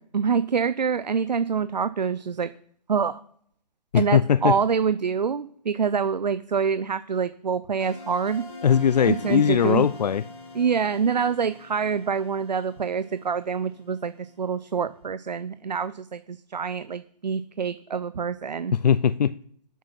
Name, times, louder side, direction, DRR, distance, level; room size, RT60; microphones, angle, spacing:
voice 1, 0.1-2.5 2.9-3.2 3.9-8.5 9.0-9.9 10.5-18.7, right 6 dB, 85° right, 0.6 m, -26 dB
voice 2, 3.9-4.6 8.6-10.2 18.7-19.3, left 8 dB, 75° left, 0.5 m, -20 dB
sound 1, 7.8-14.5, left 3 dB, 50° left, 4.9 m, -43 dB
9.6 x 9.3 x 5.8 m
hypercardioid pair, 140°, 21 cm